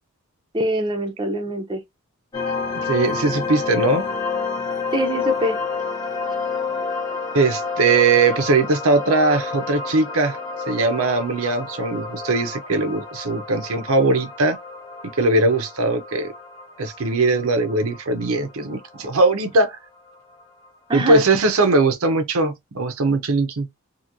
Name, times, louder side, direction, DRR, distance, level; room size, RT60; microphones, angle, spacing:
voice 1, 0.5-1.8 4.9-5.6 20.9-21.3, equal, 20° right, 0.5 m, -23 dB
sound 1, 2.3-19.3, left 4 dB, 15° left, 0.7 m, -29 dB
voice 2, 2.8-4.1 7.3-10.4 10.7-14.6 15.2-16.3 16.8-19.8 20.9-23.7, right 3 dB, 70° right, 0.6 m, -20 dB
2.9 x 2.7 x 2.5 m
head